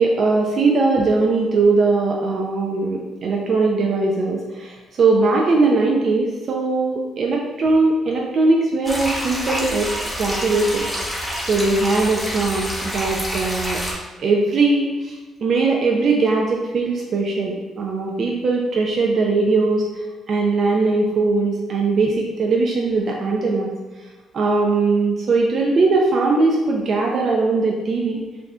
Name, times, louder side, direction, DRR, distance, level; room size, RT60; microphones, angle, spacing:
voice 1, 0.0-9.9 10.2-10.8 11.5-13.8 14.2-19.8 20.3-23.7 24.3-28.2, right 3 dB, 55° right, -1 dB, 0.3 m, -20 dB
sound 1, 8.8-13.9, equal, 5° left, 0.8 m, -27 dB
2.5 x 2.1 x 3.4 m, 1.2 s
cardioid pair, 90°, 0 cm